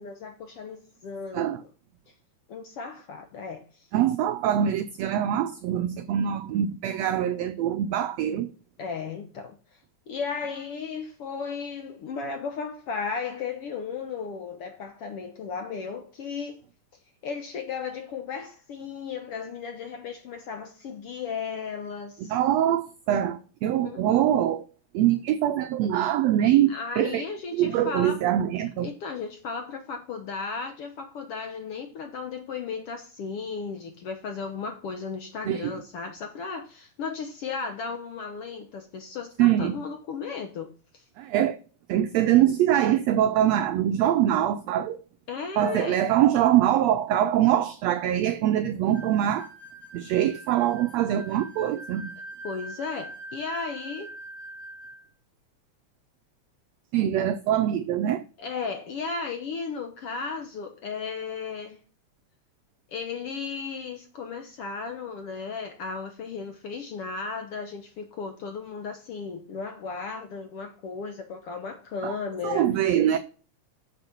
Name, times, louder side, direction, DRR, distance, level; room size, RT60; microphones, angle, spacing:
voice 1, 0.0-1.7 2.5-3.9 8.8-9.8 10.1-16.6 17.2-22.3 23.8-24.5 26.7-28.2 28.8-41.0 45.3-46.0 52.4-54.1 58.4-61.8 62.9-72.7, left 5 dB, 70° left, 1.4 m, -35 dB
voice 2, 3.9-8.5 22.3-24.7 24.9-27.2 27.5-28.9 35.5-35.7 39.4-39.8 41.2-41.6 41.9-45.0 45.6-49.5 49.9-52.1 56.9-58.2 72.0-72.2 72.4-73.2, right 11 dB, 90° right, 1.4 m, -23 dB
sound 1, 48.9-55.0, right 2 dB, 15° left, 2.2 m, -43 dB
8.0 x 6.6 x 5.9 m
omnidirectional pair, 3.7 m